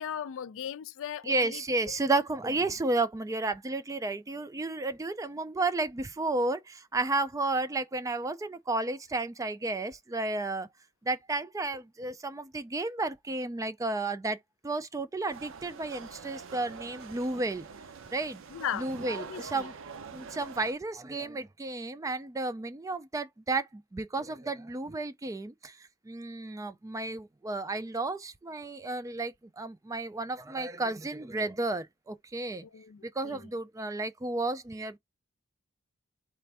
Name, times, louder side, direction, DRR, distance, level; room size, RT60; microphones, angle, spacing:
voice 1, 0.0-1.6 1.9-2.0 18.5-18.9 19.1-19.7 32.6-33.5, left 9 dB, 65° left, 0.4 m, -38 dB
voice 2, 1.2-10.7 11.0-14.4 14.6-17.7 18.1-18.4 18.7-19.7 20.1-25.8 26.1-32.7 33.0-35.0, right 2 dB, 15° right, 0.3 m, -32 dB
sound 1, 15.3-20.7, right 5 dB, 60° right, 0.6 m, -45 dB
4.2 x 2.5 x 3.3 m
head